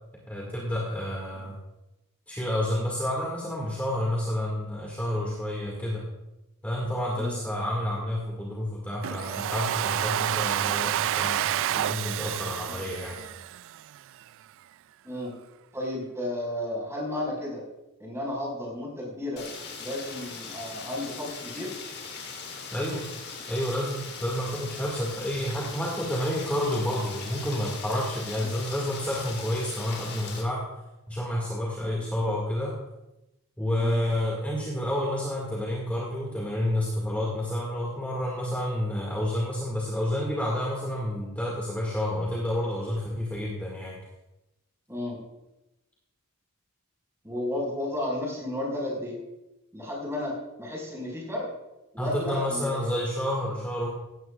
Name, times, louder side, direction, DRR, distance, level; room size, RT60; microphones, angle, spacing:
voice 1, 0.3-1.6 2.3-6.1 6.6-13.2 22.7-23.1 23.5-30.7 31.1-32.8 33.6-44.0 52.0-53.9, left 1 dB, 5° left, -4 dB, 2.1 m, -29 dB
Domestic sounds home sounds, 9.0-14.0, right 12 dB, 60° right, 0.3 m, -29 dB
voice 2, 15.7-17.6 18.0-19.4 19.8-21.7 28.4-28.5 31.8-32.0 33.8-33.9 44.9-45.2 47.2-49.2 49.7-51.5 51.9-53.0, left 1 dB, 15° right, -3 dB, 5.1 m, -33 dB
Rain, 19.4-30.4, left 5 dB, 75° left, 3.3 m, -40 dB
17.0 x 14.0 x 2.4 m, 0.97 s
head